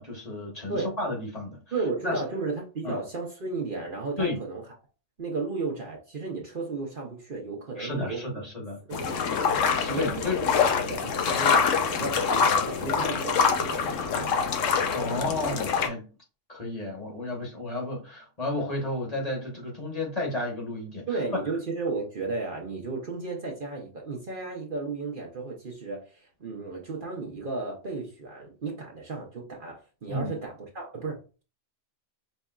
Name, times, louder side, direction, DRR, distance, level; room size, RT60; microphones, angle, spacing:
voice 1, 0.0-1.6 2.0-2.2 2.8-3.0 4.2-4.4 7.8-9.1 9.7-10.4 14.9-16.1 16.5-21.1 30.1-30.3, left 2 dB, 30° left, 1.4 m, -32 dB
voice 2, 1.7-4.6 5.2-8.4 8.9-9.5 9.9-14.6 21.1-31.4, right 3 dB, 45° right, 0.9 m, -34 dB
sound 1, 8.9-15.9, left 6 dB, 80° left, 1.1 m, -25 dB
5.3 x 3.4 x 2.4 m
omnidirectional pair, 1.3 m